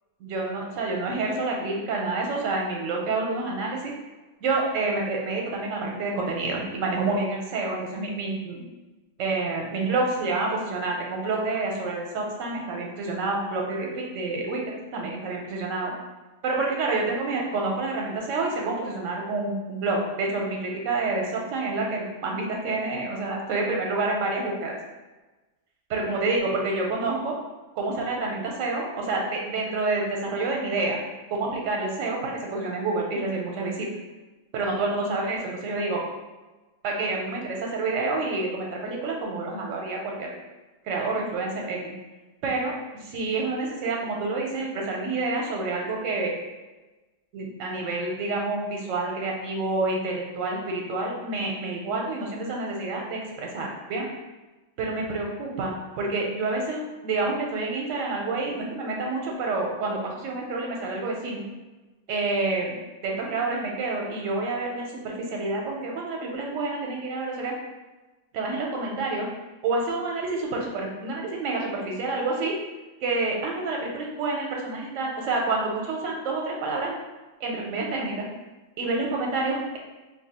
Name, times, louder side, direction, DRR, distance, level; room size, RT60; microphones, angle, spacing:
voice 1, 0.2-3.9 4.4-8.6 9.2-14.6 14.9-15.9 16.4-24.8 25.9-27.4 27.8-31.0 31.3-33.9 34.5-36.0 36.8-40.3 40.8-41.9 42.4-46.3 47.3-54.0 54.8-61.4 62.1-62.8 63.0-67.5 68.3-69.3 69.6-72.6 73.0-76.9 77.4-78.2 78.8-79.8, right 3 dB, 75° right, 0 dB, 1.0 m, -28 dB
2.4 x 2.3 x 3.9 m, 1.2 s
omnidirectional pair, 1.4 m